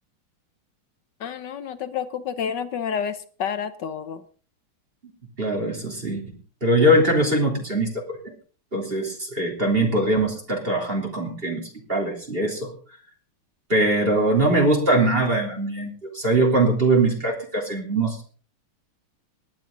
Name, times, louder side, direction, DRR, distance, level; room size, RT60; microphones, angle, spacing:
voice 1, 1.2-4.2, left 7 dB, 65° left, 12 dB, 1.3 m, -29 dB
voice 2, 5.4-8.2 8.7-12.7 13.7-18.3, right 1 dB, 25° right, 1 dB, 3.5 m, -22 dB
18.5 x 11.5 x 3.9 m, 0.40 s
omnidirectional pair, 2.4 m